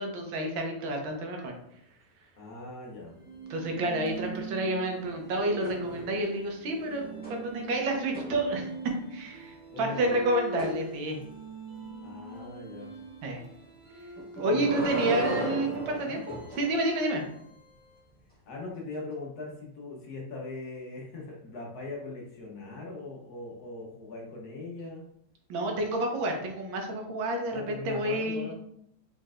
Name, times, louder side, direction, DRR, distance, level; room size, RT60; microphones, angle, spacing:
voice 1, 0.0-1.5 3.5-8.6 9.1-11.2 13.2-13.4 14.4-17.2 25.5-28.5, right 1 dB, 80° right, 2 dB, 1.6 m, -29 dB
voice 2, 2.4-3.1 4.1-4.2 9.7-10.2 12.0-12.9 14.4-16.2 18.5-25.0 27.5-28.5, left 3 dB, 60° left, -2 dB, 1.3 m, -40 dB
sound 1, 3.1-18.2, right 2 dB, 50° right, 0.5 m, -43 dB
guarda roupa rangendo, 5.6-6.3 6.6-9.0 10.6-10.8 14.1-16.7 18.9-19.0, right 1 dB, 5° left, 1.1 m, -37 dB
4.4 x 4.3 x 2.4 m, 0.74 s
omnidirectional pair, 2.1 m